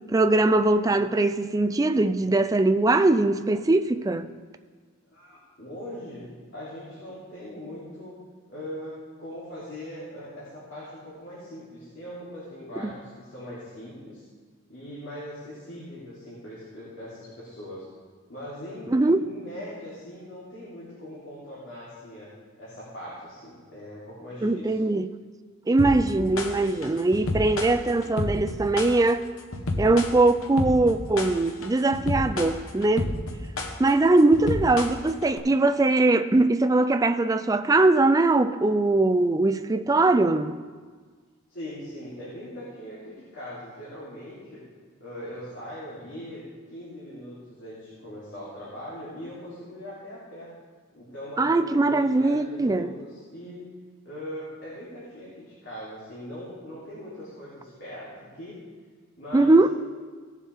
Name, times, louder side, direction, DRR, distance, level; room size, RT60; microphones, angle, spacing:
voice 1, 0.1-4.3 12.8-12.9 18.9-19.2 24.4-25.1 25.7-29.3 29.8-33.1 33.8-40.6 51.4-52.9 59.3-59.7, right 2 dB, 15° right, 0.4 m, -21 dB
voice 2, 5.1-8.1 8.5-14.2 14.7-17.8 18.3-22.3 22.6-24.7 41.5-44.6 45.0-50.5 50.9-53.6 54.0-58.6 59.2-59.7, equal, 60° left, 3.3 m, -40 dB
sound 1, 25.8-35.4, left 2 dB, 75° left, 1.0 m, -31 dB
17.5 x 7.3 x 3.6 m
head